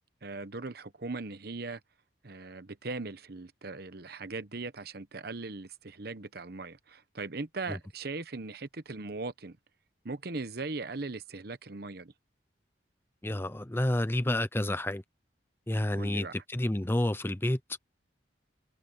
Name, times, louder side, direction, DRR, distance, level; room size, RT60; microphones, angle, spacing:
voice 1, 0.2-1.8 2.2-9.6 10.0-12.1 15.9-16.3, right 3 dB, 55° right, 1.0 m, -39 dB
voice 2, 13.2-15.0 15.7-17.6, left 1 dB, 10° left, 0.6 m, -29 dB
head